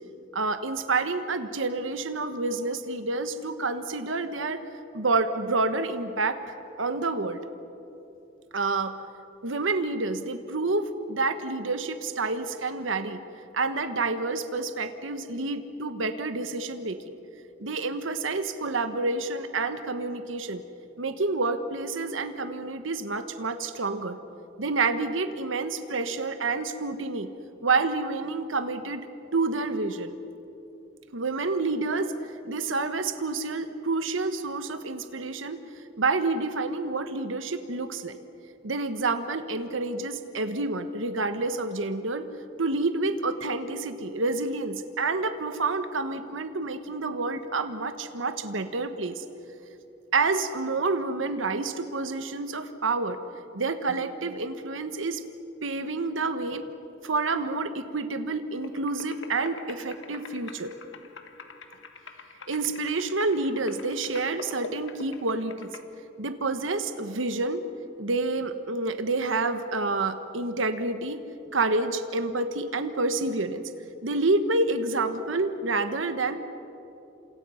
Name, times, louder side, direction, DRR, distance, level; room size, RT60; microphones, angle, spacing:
voice 1, 0.3-4.6 4.9-6.4 6.8-7.4 8.5-8.9 9.4-13.2 13.5-17.2 17.6-20.6 21.0-24.2 24.6-27.3 27.6-30.1 31.1-35.6 36.0-38.2 38.6-42.3 42.6-49.2 50.1-53.2 53.5-55.2 55.6-56.7 57.0-60.7 62.5-65.7 66.2-67.6 68.0-71.2 71.5-73.7 74.0-76.4, right 3 dB, 90° right, 9 dB, 1.3 m, -28 dB
sound 1, 58.6-65.8, left 4 dB, 75° left, 1.7 m, -45 dB
29.5 x 27.0 x 5.7 m, 2.9 s
head